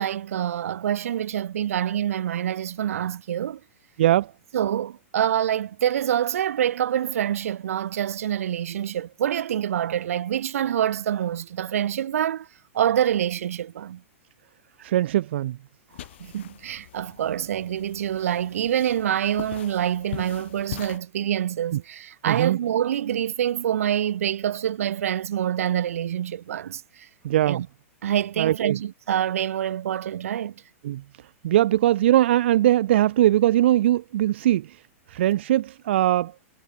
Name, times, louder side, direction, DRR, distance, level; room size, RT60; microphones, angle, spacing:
voice 1, 0.0-3.6 4.5-12.5 12.7-14.0 16.2-27.1 27.5-27.7 28.0-30.6, right 10 dB, 75° right, 2.0 m, -26 dB
voice 2, 4.0-4.3 14.8-15.6 21.7-21.8 22.2-22.6 27.2-27.6 28.4-28.8 30.8-31.0 31.4-34.8 35.1-36.3, right 13 dB, 50° right, 0.7 m, -21 dB
sound 1, 15.9-21.0, left 13 dB, 50° left, 4.9 m, -41 dB
supercardioid pair, 180°, 8 cm